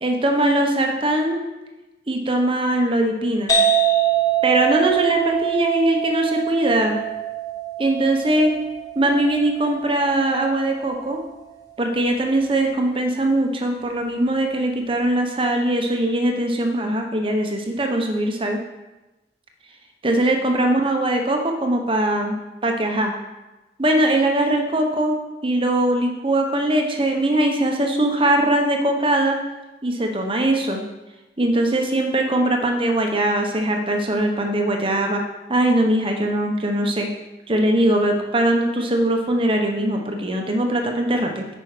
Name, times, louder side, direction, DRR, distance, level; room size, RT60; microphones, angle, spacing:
voice 1, 0.0-1.4 2.1-3.5 4.4-7.0 7.8-8.6 9.0-11.2 11.8-18.6 20.0-22.4 22.6-23.1 23.8-25.2 25.4-29.4 29.8-30.8 31.4-35.2 35.5-37.1 37.5-41.5, right 1 dB, 30° right, 3 dB, 1.0 m, -21 dB
sound 1, 3.5-10.9, right 8 dB, 20° left, 1.3 m, -24 dB
8.9 x 5.4 x 5.0 m, 1.1 s
head